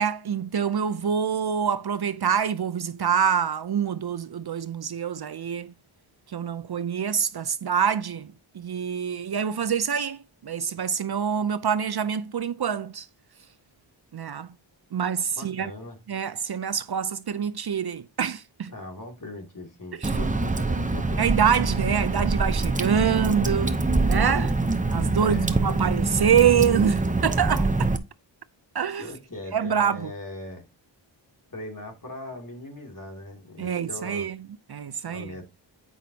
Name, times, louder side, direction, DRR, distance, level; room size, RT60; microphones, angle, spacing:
voice 1, 0.0-5.7 6.3-13.1 14.1-14.5 14.9-15.7 16.1-18.7 20.0-20.2 21.2-24.6 24.9-27.7 28.7-29.1 29.5-30.1 33.6-34.4 34.7-35.3, right 8 dB, 55° right, 0.6 m, -26 dB
voice 2, 15.4-16.0 18.7-21.2 25.2-25.5 29.0-30.6 31.5-34.3 35.1-35.4, left 1 dB, 40° left, 2.5 m, -40 dB
Water / Drip, 20.0-28.0, right 2 dB, 15° right, 0.7 m, -25 dB
8.6 x 5.1 x 2.8 m
wide cardioid pair, 75°, 47 cm